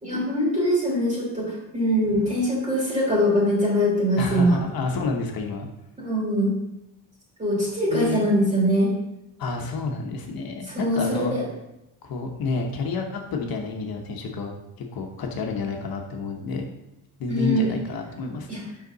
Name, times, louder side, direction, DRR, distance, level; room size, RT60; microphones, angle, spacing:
voice 1, 0.0-4.6 6.0-6.5 7.4-8.9 10.7-11.4 17.3-17.7 18.5-18.6, equal, 20° right, -5 dB, 3.1 m, -22 dB
voice 2, 4.2-5.7 7.9-8.2 9.4-11.3 12.0-14.5 14.8-16.7 17.2-18.5, left 4 dB, 65° left, 2 dB, 1.1 m, -29 dB
8.1 x 5.9 x 4.0 m, 0.89 s
cardioid pair, 155°, 39 cm